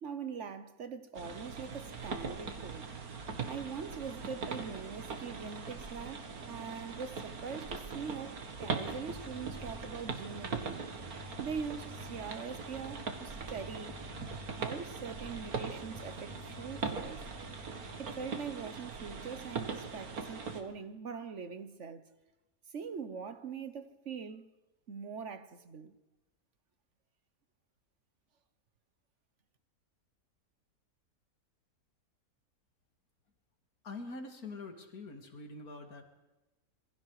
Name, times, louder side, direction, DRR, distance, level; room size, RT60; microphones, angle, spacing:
voice 1, 0.0-2.9 3.4-10.9 11.4-14.0 14.5-17.2 18.0-22.1 22.7-24.5 24.9-25.9, right 6 dB, 55° right, 1.3 m, -42 dB
sound 1, 1.1-20.6, right 5 dB, 75° right, 2.3 m, -41 dB
Bass guitar, 8.6-18.2, left 2 dB, ahead, 2.7 m, -52 dB
voice 2, 33.8-36.0, left 3 dB, 75° left, 2.9 m, -44 dB
27.0 x 22.0 x 4.9 m
omnidirectional pair, 1.6 m